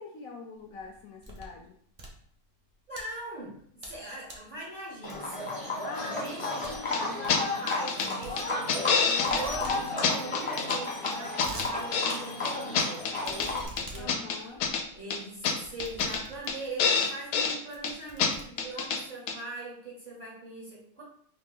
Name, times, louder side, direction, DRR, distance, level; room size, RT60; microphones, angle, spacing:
voice 1, 0.0-1.8 5.8-7.7 8.9-9.6 9.9-10.1 13.9-14.6, left 4 dB, 70° left, 1 dB, 0.9 m, -43 dB
sound 1, 0.6-1.6 1.9-3.0 3.5-4.0 4.2-4.5 5.1-5.5 5.8-5.9 6.2-6.3 6.6-6.8 7.1-7.4 8.2-8.9 9.2-9.8 10.1-10.2 10.4-10.5 11.0-11.7 12.1-12.2 13.2-16.7 17.3-17.4 17.7-19.0, right 1 dB, 60° right, 0.4 m, -45 dB
voice 2, 2.9-5.5 6.0-6.6 7.6-13.1 13.6-14.2 14.9-21.0, right 2 dB, 35° right, -6 dB, 0.9 m, -41 dB
Livestock farm animals working animals, 5.0-13.7, left 2 dB, 25° left, 0.7 m, -33 dB
sound 2, 6.9-7.0 7.3-7.4 7.7-8.1 8.4-9.4 9.7-9.8 10.0-10.8 11.1-12.1 12.4-13.5 13.8-14.8 15.1-15.2 15.4-15.5 15.8-16.2 16.5-16.6 16.8-17.6 17.8-17.9 18.2-18.3 18.6-19.0 19.3-19.4, left 6 dB, 85° left, 1.2 m, -27 dB
2.9 x 2.8 x 3.7 m, 0.62 s
omnidirectional pair, 1.8 m